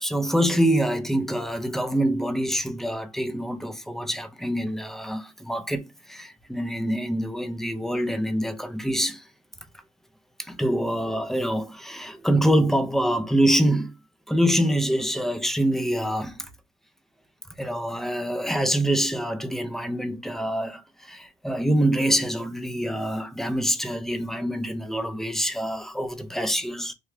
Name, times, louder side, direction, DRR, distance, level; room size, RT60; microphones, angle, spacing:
voice 1, 0.0-9.2 10.4-14.0 14.3-16.4 17.6-26.9, right 1 dB, ahead, 0.6 m, -25 dB
3.3 x 2.4 x 3.3 m
cardioid pair, 100°, 16 cm